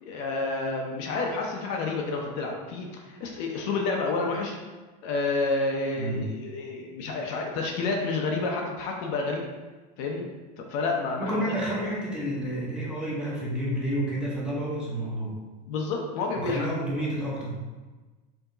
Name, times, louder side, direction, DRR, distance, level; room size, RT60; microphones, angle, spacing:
voice 1, 0.0-4.6 5.0-9.5 10.0-10.2 10.6-11.4 15.7-16.7, left 3 dB, 50° left, 1 dB, 0.6 m, -29 dB
voice 2, 11.2-15.4 16.3-17.6, right 1 dB, 5° right, -6 dB, 0.8 m, -30 dB
4.5 x 2.8 x 3.9 m, 1.3 s
supercardioid pair, 165°, 20 cm